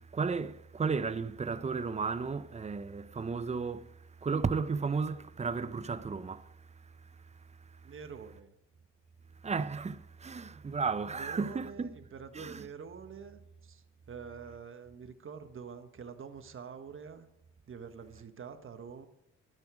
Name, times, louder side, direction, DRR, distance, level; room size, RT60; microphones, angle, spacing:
voice 1, 0.0-7.9 9.4-12.0 12.3-12.7, right 5 dB, 20° right, 0.7 m, -34 dB
voice 2, 7.8-8.5 11.1-17.3 17.7-19.1, right 6 dB, 45° right, 1.4 m, -46 dB
12.5 x 11.0 x 5.0 m
cardioid pair, 90°, 30 cm